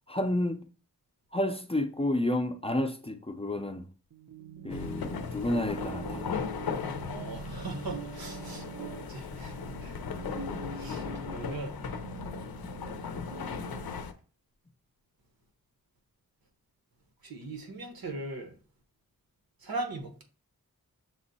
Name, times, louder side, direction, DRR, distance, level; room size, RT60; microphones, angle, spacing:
voice 1, 0.1-0.7 1.3-3.8 4.6-6.4, left 1 dB, 15° left, 0.5 m, -30 dB
sound 1, 4.1-14.0, right 6 dB, 60° right, 0.6 m, -44 dB
sound 2, 4.7-14.1, left 6 dB, 85° left, 0.6 m, -37 dB
voice 2, 6.9-9.5 9.8-10.0 10.7-11.9 12.4-13.0 17.2-18.5 19.6-20.2, right 3 dB, 80° right, 1.1 m, -40 dB
6.1 x 2.1 x 4.0 m
wide cardioid pair, 70°, 36 cm